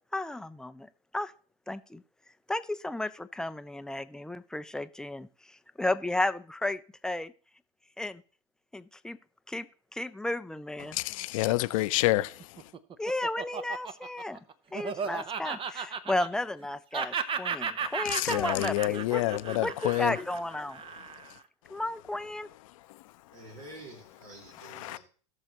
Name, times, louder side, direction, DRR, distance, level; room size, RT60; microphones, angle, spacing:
voice 1, 0.1-1.3 1.7-2.0 2.5-7.3 8.0-8.2 8.7-9.2 9.5-11.0 13.0-14.4 14.7-20.8 21.7-22.5, left 2 dB, 5° left, 0.5 m, -33 dB
voice 2, 10.8-12.7 18.0-20.2 21.2-21.4 21.7-21.8 22.9-23.0 24.6-25.0, left 18 dB, 70° left, 0.6 m, -29 dB
Laughter, 12.4-16.7 16.9-21.4, right 6 dB, 30° right, 0.8 m, -35 dB
voice 3, 23.3-25.0, right 1 dB, 70° right, 4.0 m, -48 dB
18.0 x 6.5 x 3.0 m
hypercardioid pair, 90°, 18 cm